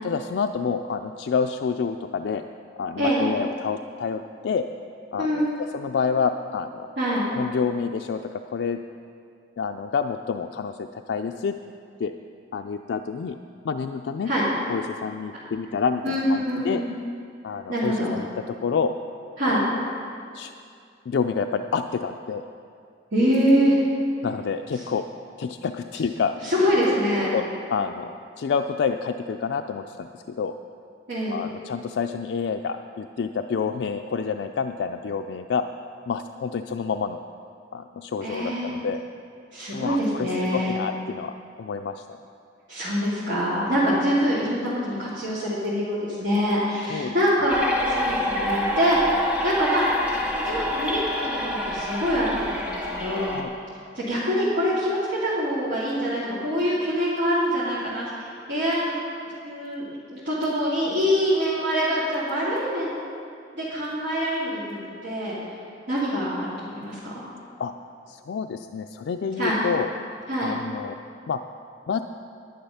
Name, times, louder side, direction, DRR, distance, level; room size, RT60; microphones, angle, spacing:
voice 1, 0.0-2.4 2.8-4.7 5.1-6.9 7.3-8.8 9.6-11.5 12.0-12.1 12.5-13.4 13.6-14.3 14.7-16.8 17.4-18.9 19.5-19.6 20.3-20.5 21.1-22.4 24.2-25.0 25.4-26.3 27.3-30.6 31.3-35.6 36.1-37.2 37.7-39.0 39.7-42.2 46.8-47.1 53.3-53.5 67.6-67.7 68.1-69.9 70.4-71.0 71.3-71.4 71.9-72.0, left 5 dB, 85° left, 5 dB, 0.4 m, -28 dB
voice 2, 5.2-5.6 7.0-7.2 14.2-14.4 16.0-16.2 16.5-16.9 17.7-18.1 19.4-19.6 23.1-23.8 26.4-27.3 31.1-31.4 38.2-38.7 39.5-40.8 42.7-49.9 50.3-53.4 53.9-59.0 59.4-62.9 63.5-65.4 65.9-67.2 69.4-69.6 70.3-70.6, equal, 90° right, -10 dB, 2.4 m, -25 dB
sound 1, 47.5-53.4, left 1 dB, 10° right, 1.2 m, -27 dB
10.5 x 10.5 x 5.6 m, 2.4 s
head